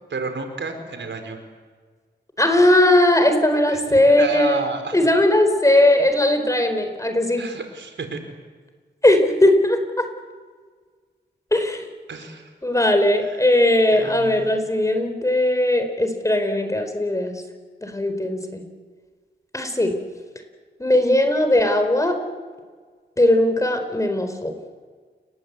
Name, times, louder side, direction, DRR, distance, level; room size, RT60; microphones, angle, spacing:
voice 1, 0.1-1.4 3.7-5.0 7.4-8.2 12.1-12.5 13.2-13.5 13.9-14.7, right 4 dB, 75° right, 5 dB, 4.5 m, -32 dB
voice 2, 2.4-4.7 4.9-7.4 9.0-10.1 11.5-11.8 12.6-17.4 17.8-18.6 19.5-19.9 20.8-22.2 23.2-24.5, left 1 dB, 15° left, 6 dB, 4.4 m, -18 dB
29.5 x 20.0 x 8.4 m, 1.5 s
wide cardioid pair, 95°, 19 cm